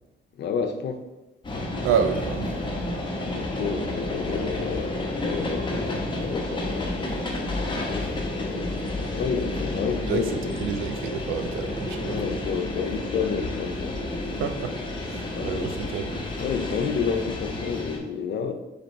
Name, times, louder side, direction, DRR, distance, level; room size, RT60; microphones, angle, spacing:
voice 1, 0.4-1.0 3.3-7.0 7.7-8.7 9.1-10.5 12.0-14.0 15.3-15.7 16.4-18.5, left 6 dB, 60° left, 6 dB, 0.6 m, -30 dB
sound 1, 1.4-18.0, left 2 dB, 25° left, 0.9 m, -30 dB
voice 2, 1.8-2.6 10.1-12.2 14.4-14.8 15.0-16.3, right 7 dB, 90° right, 7 dB, 0.5 m, -29 dB
4.0 x 3.3 x 4.0 m, 1.1 s
cardioid pair, 90°, 20 cm